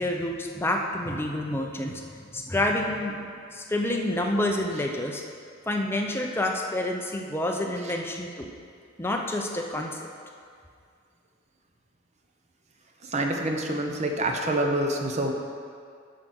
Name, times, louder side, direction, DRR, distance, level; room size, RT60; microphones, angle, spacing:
voice 1, 0.0-5.2 5.7-8.5 9.0-10.0, left 1 dB, 10° left, 1 dB, 0.6 m, -28 dB
voice 2, 13.0-15.3, right 1 dB, 35° right, 3 dB, 0.8 m, -26 dB
8.2 x 5.0 x 6.3 m, 2.2 s
head